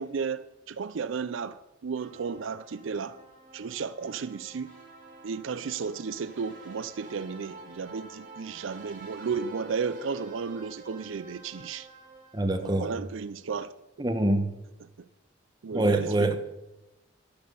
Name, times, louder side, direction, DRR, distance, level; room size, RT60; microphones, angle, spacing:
voice 1, 0.0-3.2 3.5-4.8 5.2-11.9 12.6-13.7 15.6-16.3, right 5 dB, 70° right, 0.4 m, -34 dB
sound 1, 2.0-13.2, right 3 dB, 40° right, 3.6 m, -49 dB
voice 2, 12.3-12.9 14.0-14.5 15.7-16.4, right 1 dB, 20° right, 1.1 m, -25 dB
11.5 x 10.5 x 6.9 m
head